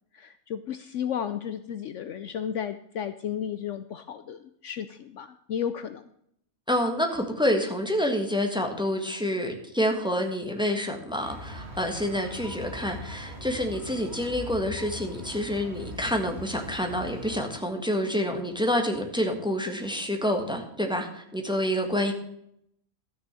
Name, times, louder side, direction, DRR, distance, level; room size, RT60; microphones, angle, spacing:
voice 1, 0.1-6.0, left 8 dB, 65° left, 11 dB, 0.9 m, -33 dB
voice 2, 6.7-22.1, equal, 5° right, 3 dB, 1.5 m, -28 dB
sound 1, 11.2-17.4, left 1 dB, 50° right, 2.1 m, -41 dB
13.0 x 6.3 x 7.5 m, 0.73 s
omnidirectional pair, 1.5 m